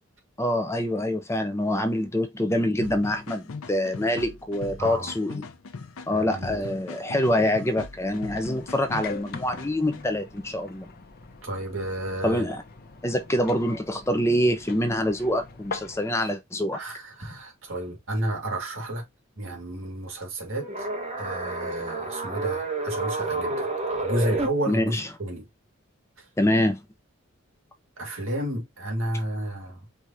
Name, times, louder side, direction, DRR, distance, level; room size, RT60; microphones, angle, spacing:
voice 1, 0.4-5.5 6.1-10.9 12.2-12.6 13.0-16.8 24.7-25.1 26.4-26.8, left 1 dB, 15° left, 0.5 m, -25 dB
sound 1, 2.8-10.0, left 4 dB, 90° left, 0.6 m, -40 dB
voice 2, 4.8-5.1 6.1-6.7 11.4-12.4 16.7-19.0 19.4-20.9 21.2-23.7 24.0-25.5 28.0-29.8, right 1 dB, 70° right, 1.9 m, -31 dB
sound 2, 8.0-16.0, left 4 dB, 45° left, 0.7 m, -42 dB
sound 3, 20.6-24.5, right 2 dB, 30° right, 1.0 m, -29 dB
4.8 x 2.4 x 4.0 m
head